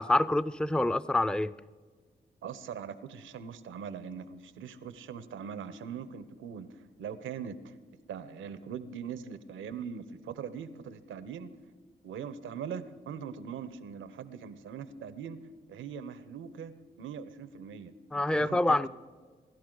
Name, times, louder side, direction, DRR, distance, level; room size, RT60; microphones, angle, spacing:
voice 1, 0.0-1.5 18.1-18.9, left 2 dB, 5° left, 15 dB, 0.4 m, -26 dB
voice 2, 2.4-7.8 8.1-11.5 12.0-15.4 15.7-18.9, right 7 dB, 90° right, 13 dB, 0.7 m, -41 dB
25.0 x 12.0 x 3.8 m, 1.5 s
supercardioid pair, 40°, 20 cm